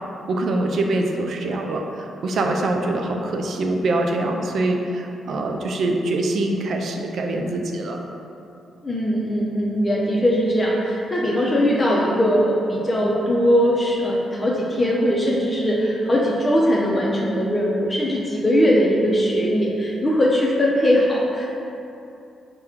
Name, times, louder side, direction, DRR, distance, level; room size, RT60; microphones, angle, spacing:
voice 1, 0.3-8.0, right 2 dB, 60° right, 2 dB, 0.3 m, -24 dB
voice 2, 8.8-21.5, equal, 30° left, -4 dB, 0.5 m, -20 dB
4.3 x 2.2 x 3.5 m, 2.8 s
hypercardioid pair, 45°, 0 cm